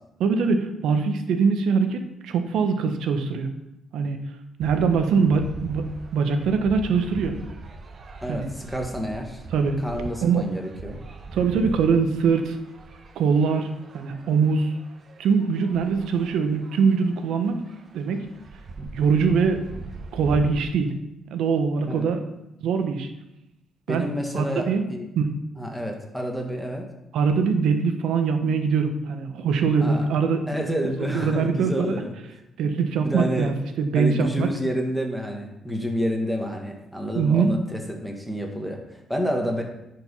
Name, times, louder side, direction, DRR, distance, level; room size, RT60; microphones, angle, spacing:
voice 1, 0.2-3.5 3.9-4.2 4.6-5.9 6.1-7.4 8.3-8.5 9.5-9.8 10.2-10.4 11.3-12.6 13.1-14.7 15.2-17.6 17.9-18.3 18.9-19.7 20.1-20.9 21.3-22.2 22.6-23.1 23.9-24.0 24.3-24.8 25.2-25.3 27.1-30.4 31.0-32.0 32.6-34.5 37.1-37.5, right 5 dB, 80° right, 7 dB, 1.2 m, -22 dB
sound 1, 4.6-20.6, right 3 dB, 45° right, 1.2 m, -40 dB
voice 2, 8.2-9.4 9.8-11.0 21.8-22.1 23.9-25.1 25.6-26.9 29.8-30.2 30.5-32.1 33.0-33.5 33.9-39.6, equal, ahead, 1 dB, 1.9 m, -29 dB
10.5 x 5.3 x 5.6 m, 0.89 s
cardioid pair, 90°, 0 cm